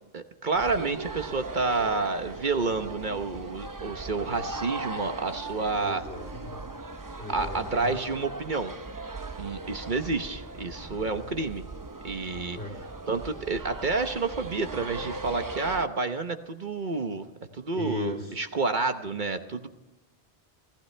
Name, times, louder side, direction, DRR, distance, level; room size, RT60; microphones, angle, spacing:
voice 1, 0.1-6.0 7.3-8.7 9.4-11.6 12.0-12.6 13.1-17.2 17.5-19.7, right 3 dB, 50° right, 8 dB, 1.1 m, -29 dB
sound 1, 0.5-15.9, right 3 dB, 20° right, 0.7 m, -39 dB
voice 2, 5.8-6.7 7.2-8.0 12.5-12.7 17.7-18.4, left 1 dB, 70° left, -2 dB, 4.1 m, -37 dB
28.0 x 15.0 x 3.3 m, 0.98 s
omnidirectional pair, 1.1 m